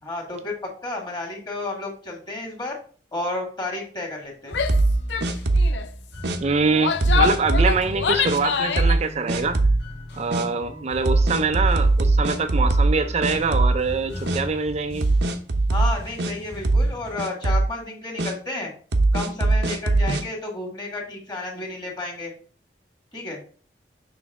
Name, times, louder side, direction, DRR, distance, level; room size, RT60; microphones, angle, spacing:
voice 1, 0.0-0.5 0.8-2.8 3.1-4.6 15.7-18.7 19.1-22.3 23.1-23.4, left 2 dB, 25° left, 1.9 m, -31 dB
Female speech woman speaking / Yell, 4.5-4.8 5.1-5.3 5.6-5.9 6.6-9.0, left 6 dB, 90° left, 0.5 m, -25 dB
sound 1, 4.5-17.3, equal, 70° left, 1.8 m, -36 dB
sound 2, 4.7-5.8 6.2-6.4 7.0-7.8 8.3-8.4 8.8-9.0 9.3-9.8 10.3-10.5 11.1-13.0 13.2-14.0 14.3-14.4 15.0-16.3 16.6-16.9 17.2-17.7 18.2-18.3 18.9-20.2, right 2 dB, 70° right, 0.7 m, -20 dB
voice 2, 6.4-9.6 10.2-15.1, right 4 dB, 40° right, 0.4 m, -24 dB
6.3 x 3.3 x 4.7 m
head